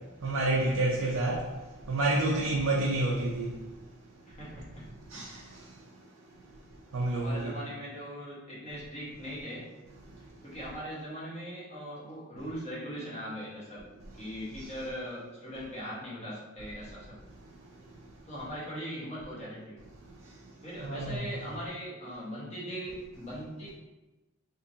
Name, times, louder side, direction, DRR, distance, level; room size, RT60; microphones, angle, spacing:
voice 1, 0.0-3.9 5.1-7.5 10.0-10.3 14.6-14.7 17.4-18.1 20.0-20.5 20.8-21.4, right 2 dB, 80° right, 0.5 m, -31 dB
voice 2, 4.3-4.9 5.1-5.6 7.1-9.7 10.4-13.9 14.2-17.2 18.3-19.8 20.6-23.7, equal, 30° left, 1.2 m, -40 dB
3.5 x 2.9 x 2.7 m
head